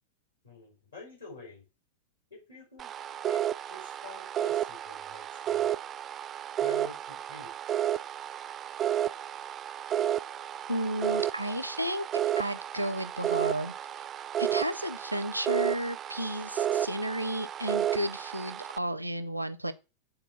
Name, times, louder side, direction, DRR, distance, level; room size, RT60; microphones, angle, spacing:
voice 1, 0.4-1.6 2.3-2.9 3.3-5.7 6.6-7.5, left 3 dB, 70° left, 5.1 m, -48 dB
sound 1, 2.8-18.8, right 11 dB, 25° right, 0.4 m, -32 dB
voice 2, 10.7-12.0 12.4-13.7 14.4-19.7, equal, 85° right, 0.7 m, -33 dB
8.9 x 4.4 x 7.1 m
figure-of-eight pair, 90°, 0 cm